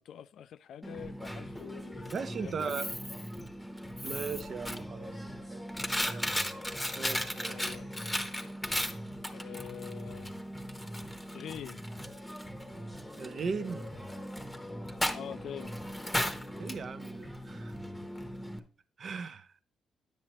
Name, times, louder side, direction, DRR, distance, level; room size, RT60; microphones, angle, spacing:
voice 1, 0.0-2.9 7.5-8.3 9.3-10.3 11.3-11.8 15.1-15.8, left 9 dB, 70° left, 0.3 m, -45 dB
Coin (dropping), 0.8-18.6, equal, 5° left, 0.9 m, -37 dB
voice 2, 2.1-2.9 4.0-5.1 5.5-5.6 6.0-6.3 6.9-7.7 13.2-13.9 16.6-17.7 19.0-19.5, right 5 dB, 50° right, 0.6 m, -38 dB
9.8 x 7.5 x 2.9 m
cardioid pair, 90°, 0 cm